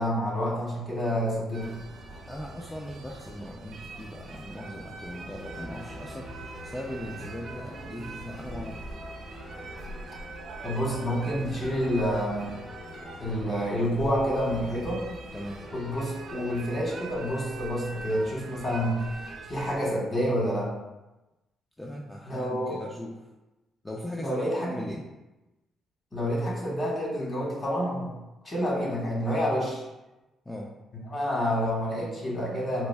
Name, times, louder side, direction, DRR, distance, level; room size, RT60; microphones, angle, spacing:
voice 1, 0.0-1.8 10.6-12.5 13.2-15.0 15.7-19.0 19.5-20.7 22.3-22.8 24.2-24.8 26.1-28.1 28.4-29.8 31.1-32.9, equal, 35° left, -4 dB, 1.3 m, -28 dB
sound 1, 1.5-19.8, right 3 dB, 65° right, 0.6 m, -43 dB
voice 2, 2.3-8.9 15.3-15.7 21.8-23.2 23.8-25.1 30.5-30.7, left 1 dB, 10° left, -1 dB, 0.3 m, -39 dB
sound 2, 5.4-17.3, left 1 dB, 50° left, 0.8 m, -46 dB
4.0 x 2.5 x 2.2 m, 1.0 s
cardioid pair, 90°, 0 cm